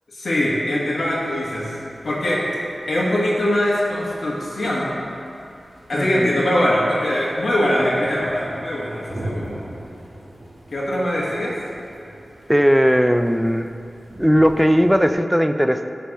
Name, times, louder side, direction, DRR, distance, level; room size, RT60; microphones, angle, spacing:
voice 1, 0.1-1.7 2.0-2.4 2.9-4.9 5.9-9.6 10.7-11.5, left 1 dB, 70° left, -7 dB, 1.3 m, -22 dB
sound 1, 0.9-15.1, right 1 dB, 65° right, 1.5 m, -41 dB
voice 2, 5.9-6.3 12.5-13.7 14.2-15.9, equal, ahead, 8 dB, 0.3 m, -17 dB
9.6 x 3.4 x 6.3 m, 2.6 s
wide cardioid pair, 90°, 0 cm